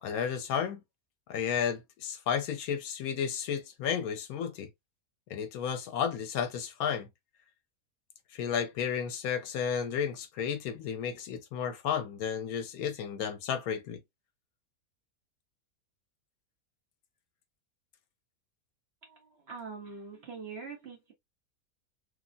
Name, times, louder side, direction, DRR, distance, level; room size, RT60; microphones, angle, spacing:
voice 1, 0.0-0.8 1.3-4.7 5.3-7.1 8.3-14.0, left 7 dB, 80° left, 1.1 m, -32 dB
voice 2, 19.0-21.1, right 5 dB, 50° right, 1.1 m, -44 dB
3.2 x 2.0 x 2.5 m
omnidirectional pair, 1.6 m